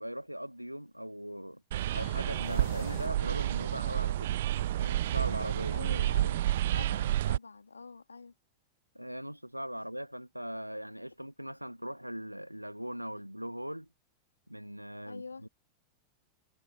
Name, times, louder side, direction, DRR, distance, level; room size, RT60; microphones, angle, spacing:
voice 1, 0.0-1.6 1.9-4.3 4.8-5.8 8.9-13.9 14.5-15.5, equal, 90° right, 1.3 m, -40 dB
sound 1, 1.7-7.4, right 13 dB, 60° right, 0.6 m, -30 dB
sound 2, 1.9-3.7, left 18 dB, 50° left, 1.2 m, -48 dB
voice 2, 5.7-6.4 6.7-8.3 15.1-15.5, left 4 dB, 80° left, 2.5 m, -45 dB
figure-of-eight pair, 90°, 0 cm